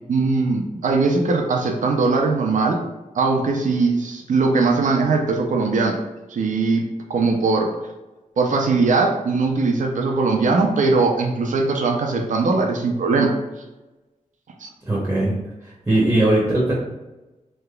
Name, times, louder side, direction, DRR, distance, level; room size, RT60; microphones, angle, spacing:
voice 1, 0.1-2.8 3.1-6.0 6.3-7.7 8.4-13.3 14.6-14.7, right 3 dB, 75° right, 1 dB, 0.5 m, -20 dB
voice 2, 14.8-15.3 15.6-16.7, right 1 dB, 15° right, -6 dB, 0.8 m, -19 dB
3.3 x 2.8 x 2.3 m, 1.1 s
wide cardioid pair, 120°, 13 cm